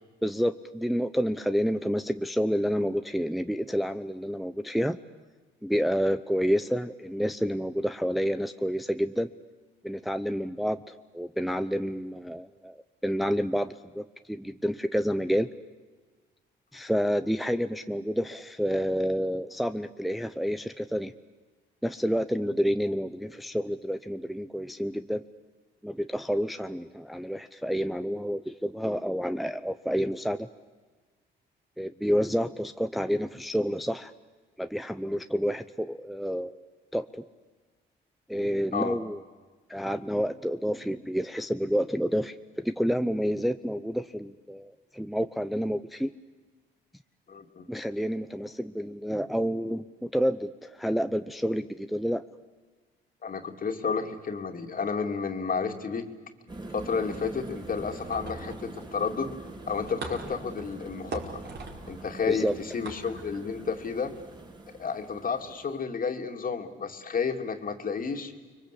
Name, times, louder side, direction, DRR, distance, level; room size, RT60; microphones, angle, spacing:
voice 1, 0.2-5.0 5.6-9.3 9.8-13.7 13.9-15.5 16.7-21.1 21.8-25.2 25.8-30.5 31.8-34.1 34.6-36.6 36.9-37.2 38.3-39.2 39.7-46.1 47.7-52.2 62.3-62.5, equal, ahead, 9 dB, 0.7 m, -29 dB
voice 2, 47.3-47.7 53.2-56.1 56.7-59.3 59.7-61.4 61.9-64.1 64.8-68.3, left 5 dB, 45° left, 5 dB, 2.8 m, -31 dB
sound 1, 56.5-65.8, right 2 dB, 20° right, 3.8 m, -44 dB
sound 2, 57.1-64.4, right 3 dB, 60° right, 5.1 m, -43 dB
30.0 x 22.5 x 8.5 m, 1.4 s
cardioid pair, 90°, 20 cm